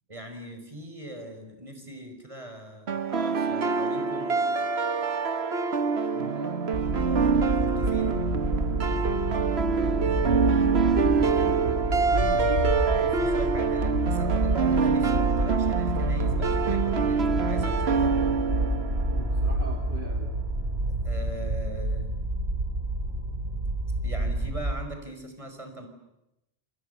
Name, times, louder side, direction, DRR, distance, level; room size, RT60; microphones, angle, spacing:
voice 1, 0.1-4.5 7.0-8.2 12.8-18.1 21.0-22.1 24.0-25.9, right 1 dB, 30° right, 5 dB, 5.7 m, -41 dB
sound 1, 2.9-19.8, right 5 dB, 75° right, 1.5 m, -26 dB
voice 2, 6.1-6.6 11.3-11.7 12.0-12.8 19.1-20.3, right 4 dB, 50° right, 2 dB, 2.9 m, -38 dB
sound 2, 6.7-24.7, right 1 dB, 90° right, 6.5 m, -28 dB
28.5 x 27.5 x 6.9 m, 0.87 s
omnidirectional pair, 1.1 m